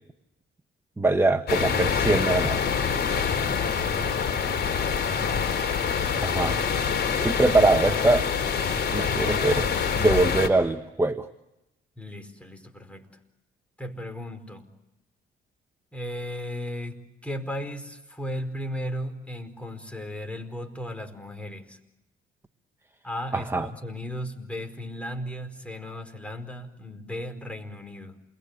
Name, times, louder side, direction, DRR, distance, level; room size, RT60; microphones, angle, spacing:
voice 1, 1.0-2.6 6.2-6.6 7.2-8.3 8.9-11.3 23.3-23.7, right 2 dB, 10° right, 8 dB, 1.2 m, -23 dB
sound 1, 1.5-10.5, left 6 dB, 55° left, 3.9 m, -25 dB
voice 2, 12.0-13.1 13.8-14.7 15.9-21.8 23.0-28.2, equal, 5° left, 6 dB, 4.7 m, -36 dB
28.5 x 22.0 x 8.3 m, 0.94 s
cardioid pair, 90°, 20 cm